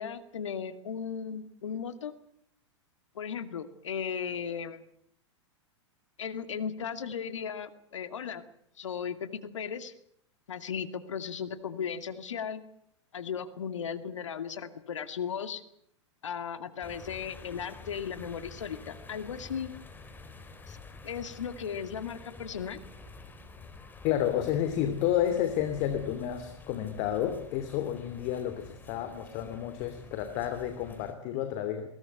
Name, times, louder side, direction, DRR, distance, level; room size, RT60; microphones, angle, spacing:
voice 1, 0.0-2.1 3.1-4.8 6.2-8.4 8.8-9.9 10.5-12.6 13.1-15.6 16.2-19.7 20.7-20.8 21.0-22.8, left 7 dB, 75° left, 11 dB, 2.4 m, -36 dB
sound 1, 16.8-31.1, left 3 dB, 10° left, 4.1 m, -49 dB
voice 2, 24.0-31.9, left 10 dB, 45° left, 8 dB, 2.9 m, -30 dB
22.5 x 18.0 x 9.3 m, 0.70 s
hypercardioid pair, 105°, 16 cm